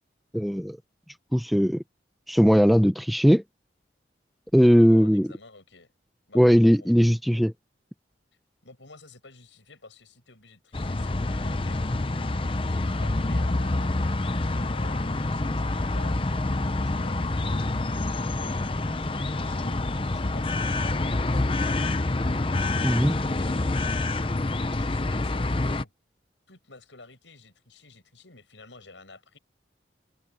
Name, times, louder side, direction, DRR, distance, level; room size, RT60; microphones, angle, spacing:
voice 1, 0.3-0.8 1.3-1.8 2.3-3.4 4.5-5.3 6.3-7.5 22.8-23.2, equal, ahead, 0.9 m, -19 dB
voice 2, 4.6-5.9 6.3-7.0 8.6-11.8 12.7-17.2 19.0-19.8 20.1-21.9 23.3-24.0 24.7-25.9 26.5-29.4, left 3 dB, 90° left, 7.8 m, -50 dB
sound 1, 10.7-25.8, left 2 dB, 30° left, 0.7 m, -27 dB
open air
head